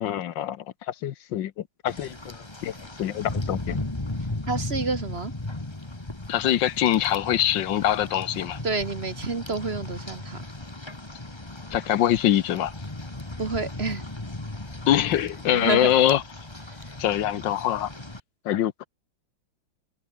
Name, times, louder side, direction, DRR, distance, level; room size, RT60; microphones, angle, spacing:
voice 1, 0.0-1.5 1.8-2.7 3.0-3.8 6.3-8.6 11.7-12.7 14.9-16.2 17.0-17.9 18.4-18.9, left 11 dB, 75° left, 1.5 m, -24 dB
Rain, 1.9-18.2, left 2 dB, 15° left, 2.0 m, -36 dB
voice 2, 4.5-5.3 8.6-10.4 13.4-14.1 15.5-15.9, right 3 dB, 35° right, 1.7 m, -29 dB
omnidirectional pair, 2.1 m